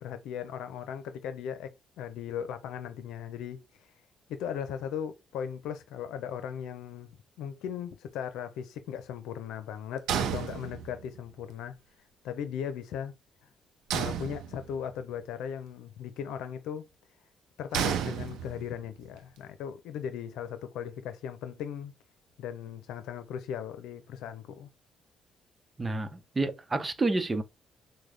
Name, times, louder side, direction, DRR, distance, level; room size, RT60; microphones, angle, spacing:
voice 1, 0.0-1.7 2.0-3.6 4.3-11.7 12.2-13.1 13.9-16.9 17.6-21.9 22.4-24.7, left 8 dB, 90° left, 0.7 m, -38 dB
sound 1, 10.1-11.2 13.9-14.9 17.7-18.8, right 8 dB, 90° right, 0.8 m, -32 dB
voice 2, 25.8-27.4, right 2 dB, 25° right, 0.8 m, -29 dB
6.3 x 2.2 x 3.4 m
cardioid pair, 90°, 0 cm